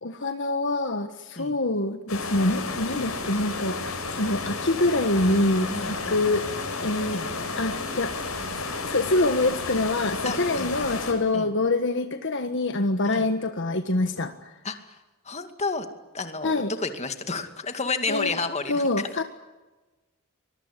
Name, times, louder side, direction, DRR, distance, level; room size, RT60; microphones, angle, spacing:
voice 1, 0.0-6.4 6.8-7.2 7.6-8.4 8.8-14.5 16.4-16.7 18.1-18.3 18.7-19.2, left 2 dB, 55° left, 8 dB, 1.5 m, -25 dB
sound 1, 2.1-11.1, left 3 dB, 75° left, 7.3 m, -32 dB
voice 2, 5.7-6.2 7.1-7.3 10.2-10.8 11.3-11.5 13.1-13.3 14.6-15.0 15.2-15.9 16.1-18.8, left 3 dB, 30° left, 7 dB, 2.4 m, -31 dB
24.5 x 22.0 x 10.0 m, 1.1 s
head